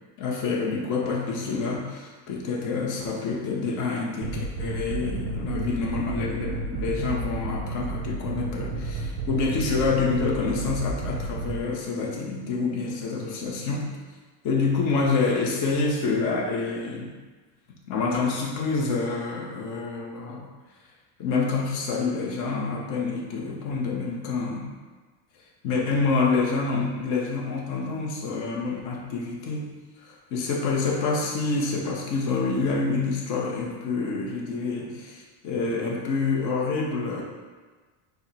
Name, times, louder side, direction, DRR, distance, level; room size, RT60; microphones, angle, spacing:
voice 1, 0.2-13.9 14.4-17.2 17.9-20.5 21.2-24.7 25.6-37.2, left 4 dB, 40° left, -2 dB, 0.7 m, -27 dB
sound 1, 4.2-11.6, right 3 dB, 45° right, 0.6 m, -32 dB
4.6 x 2.2 x 4.0 m, 1.4 s
cardioid pair, 165°, 47 cm